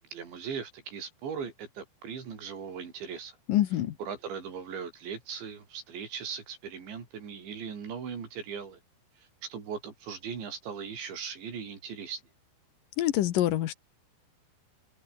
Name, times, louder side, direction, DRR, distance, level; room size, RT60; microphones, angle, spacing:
voice 1, 0.1-3.4 4.0-8.8 9.4-12.2, right 6 dB, 65° right, 6.7 m, -39 dB
voice 2, 3.5-3.9 13.0-13.7, left 13 dB, 80° left, 1.9 m, -25 dB
omnidirectional pair, 5.8 m